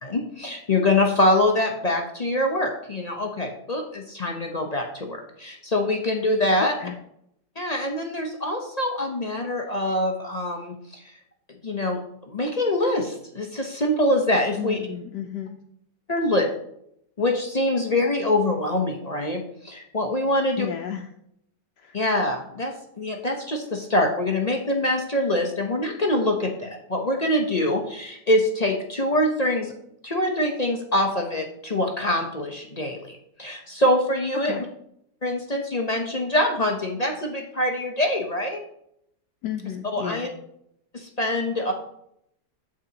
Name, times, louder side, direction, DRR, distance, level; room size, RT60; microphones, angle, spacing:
voice 1, 0.0-6.7 7.6-11.0 11.6-12.0 12.3-14.8 16.1-16.5 17.2-20.7 21.9-29.7 30.0-34.5 35.2-38.6 39.9-40.3 40.9-41.7, left 1 dB, 40° left, 2 dB, 0.6 m, -24 dB
voice 2, 6.6-6.9 14.6-15.6 20.6-21.1 21.8-22.0 34.4-34.6 39.4-40.3, left 9 dB, 80° left, 3 dB, 1.2 m, -32 dB
14.5 x 4.9 x 2.8 m, 0.74 s
omnidirectional pair, 1.8 m